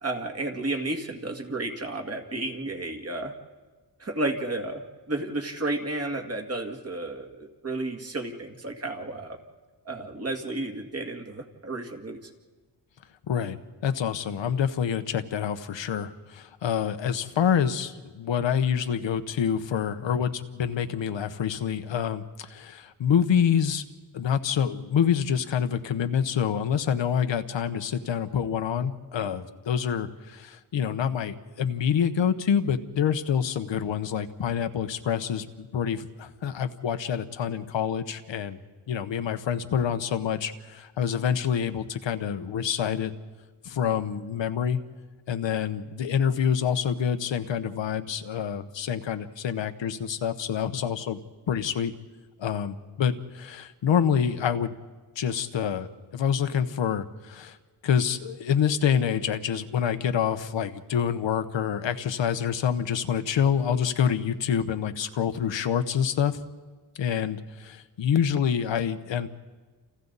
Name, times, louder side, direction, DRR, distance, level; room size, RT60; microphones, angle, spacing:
voice 1, 0.0-3.3 4.0-4.8 5.1-9.4 9.8-12.3, right 2 dB, 35° right, 3 dB, 2.3 m, -32 dB
voice 2, 13.3-23.8 24.1-38.6 38.9-43.1 43.6-44.8 45.3-51.2 51.5-51.9 52.4-54.7 55.2-57.6 57.8-66.4 67.0-69.3, left 8 dB, 85° left, 10 dB, 1.2 m, -27 dB
29.0 x 29.0 x 4.1 m, 1.3 s
wide cardioid pair, 125°, 43 cm